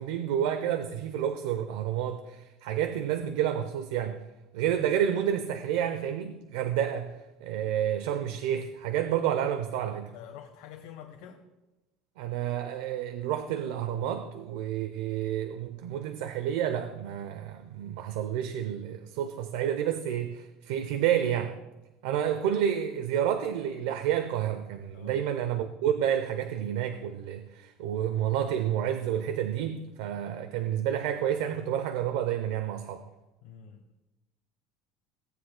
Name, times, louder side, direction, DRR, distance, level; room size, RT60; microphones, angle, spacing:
voice 1, 0.0-4.2 4.5-10.1 12.2-21.6 22.0-33.1, right 10 dB, 80° right, 0.7 m, -30 dB
voice 2, 10.1-11.4 24.9-25.2 33.4-34.0, left 9 dB, 70° left, 1.1 m, -47 dB
17.0 x 9.5 x 2.2 m
cardioid pair, 160°, 0 cm